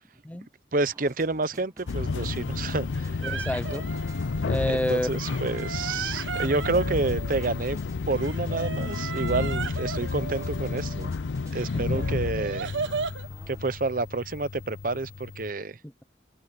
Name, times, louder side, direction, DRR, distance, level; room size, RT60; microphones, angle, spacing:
voice 1, 0.7-3.2 4.7-7.8 8.1-11.1 11.5-12.7 13.5-15.8, right 3 dB, 50° right, 0.8 m, -29 dB
sound 1, 0.8-13.8, right 1 dB, 20° right, 1.2 m, -52 dB
sound 2, 1.9-15.5, left 4 dB, 85° left, 0.5 m, -31 dB
voice 2, 3.2-3.9 4.4-5.1 11.7-12.1 15.8-16.0, left 1 dB, 10° left, 0.5 m, -29 dB
sound 3, 3.2-4.7 5.1-7.8 8.1-11.1 11.5-13.3, right 5 dB, 85° right, 0.9 m, -36 dB
head